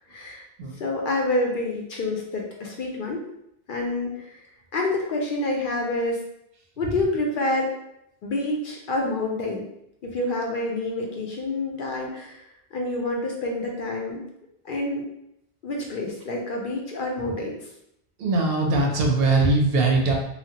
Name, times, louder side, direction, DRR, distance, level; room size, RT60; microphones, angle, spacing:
voice 1, 0.1-0.4 0.7-3.2 3.7-4.4 4.7-6.2 6.8-7.7 8.2-9.6 10.0-14.3 14.6-15.0 15.6-17.6, left 2 dB, 60° left, 0 dB, 0.6 m, -28 dB
voice 2, 18.2-20.1, right 3 dB, 65° right, 1 dB, 0.8 m, -21 dB
3.1 x 2.1 x 2.8 m, 0.79 s
omnidirectional pair, 1.1 m